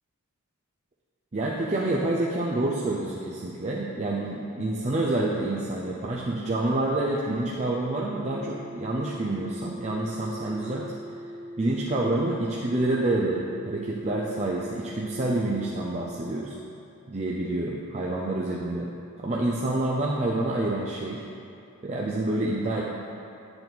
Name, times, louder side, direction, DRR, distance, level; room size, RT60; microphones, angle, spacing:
voice 1, 1.3-10.9 11.6-16.6 17.1-18.9 19.2-21.2 21.8-22.8, right 2 dB, 30° right, -4 dB, 0.6 m, -28 dB
sound 1, 8.2-16.4, right 1 dB, 50° right, 1.6 m, -41 dB
8.8 x 6.8 x 4.0 m, 2.7 s
head